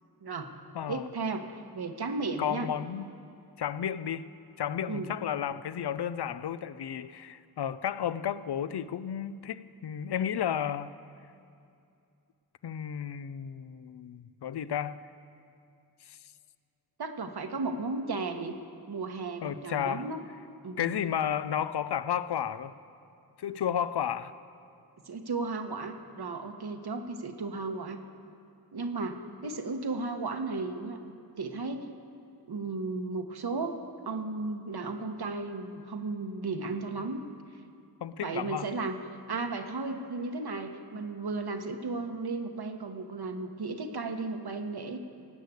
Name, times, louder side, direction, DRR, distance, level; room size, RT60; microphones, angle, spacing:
voice 1, 0.2-0.5 0.9-2.7 4.9-5.1 17.0-18.6 18.9-20.2 20.6-21.0 25.1-28.0 28.7-31.9 32.5-37.2 38.2-39.0 39.3-45.0, right 3 dB, 70° right, 6 dB, 1.2 m, -35 dB
voice 2, 0.7-1.1 2.4-3.1 3.6-4.3 4.6-10.9 12.6-15.0 16.1-16.2 19.4-20.1 20.8-22.8 23.4-24.3 38.0-38.7, left 9 dB, 75° left, 14 dB, 0.5 m, -32 dB
18.0 x 6.6 x 8.3 m, 2.5 s
wide cardioid pair, 60°, 40 cm